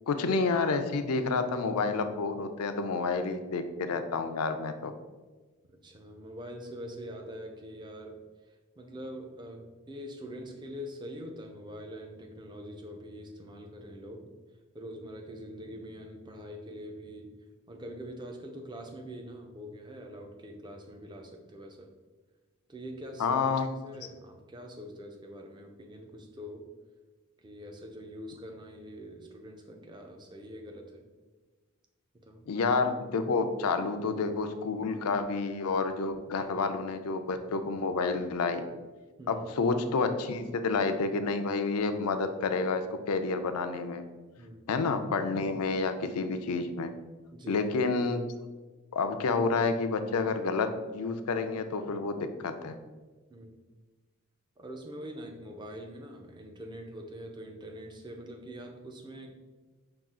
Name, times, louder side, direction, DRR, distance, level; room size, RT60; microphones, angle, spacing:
voice 1, 0.1-4.9 23.2-23.7 32.5-38.6 39.3-44.0 44.7-46.9 47.5-48.2 48.9-52.8, left 4 dB, 80° left, 9 dB, 0.4 m, -29 dB
voice 2, 5.7-8.2 8.8-14.3 14.7-17.3 17.7-21.9 22.7-26.6 27.4-31.1 32.2-32.5 39.2-39.5 44.4-44.7 47.3-47.6 53.3-53.5 54.6-59.3, equal, 20° right, 3 dB, 0.5 m, -44 dB
5.6 x 2.4 x 3.6 m, 1.3 s
head